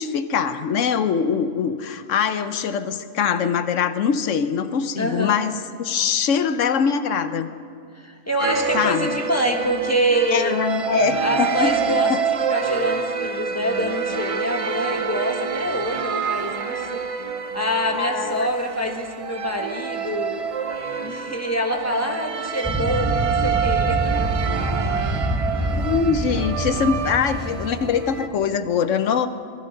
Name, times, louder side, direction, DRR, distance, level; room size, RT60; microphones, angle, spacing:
voice 1, 0.0-7.5 8.7-9.1 10.3-11.8 12.1-12.2 17.9-18.5 25.7-29.3, left 7 dB, 80° left, 11 dB, 1.1 m, -23 dB
voice 2, 5.0-5.4 7.9-10.6 11.2-17.0 17.5-20.4 21.0-24.3, equal, 15° left, 2 dB, 1.4 m, -26 dB
sound 1, 8.4-28.3, right 6 dB, 40° right, 0.5 m, -27 dB
sound 2, 22.6-28.4, right 1 dB, 10° right, 0.9 m, -26 dB
19.0 x 14.0 x 5.3 m, 2.3 s
omnidirectional pair, 1.3 m